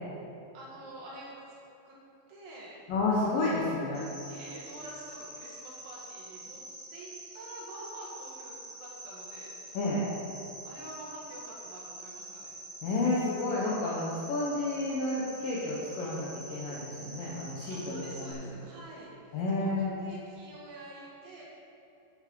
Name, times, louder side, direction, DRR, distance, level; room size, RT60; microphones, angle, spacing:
voice 1, 0.5-1.4 1.8-2.0 2.3-2.8 4.2-6.6 6.9-9.8 10.6-12.5 17.7-19.1 19.6-21.4, right 1 dB, 85° right, -5 dB, 4.4 m, -47 dB
voice 2, 2.9-4.1 9.7-10.1 12.8-18.5 19.3-19.9, left 2 dB, 70° left, -6 dB, 2.3 m, -31 dB
Cricket, 3.9-18.3, right 1 dB, 65° right, 0.8 m, -46 dB
12.0 x 8.0 x 3.8 m, 2.8 s
omnidirectional pair, 5.2 m